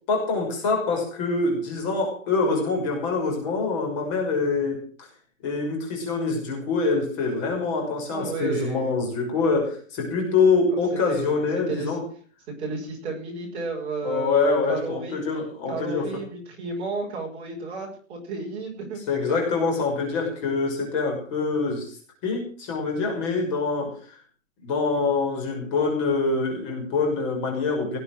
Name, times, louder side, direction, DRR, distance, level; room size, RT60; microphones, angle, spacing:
voice 1, 0.1-5.1 5.4-12.0 14.0-16.1 19.1-22.0 22.2-24.2 24.6-28.0, left 4 dB, 25° left, 1 dB, 5.9 m, -25 dB
voice 2, 8.1-8.9 11.1-12.0 12.6-15.2 15.7-19.0, right 3 dB, 15° right, -2 dB, 5.2 m, -32 dB
19.0 x 8.5 x 7.4 m, 0.42 s
hypercardioid pair, 175°, 39 cm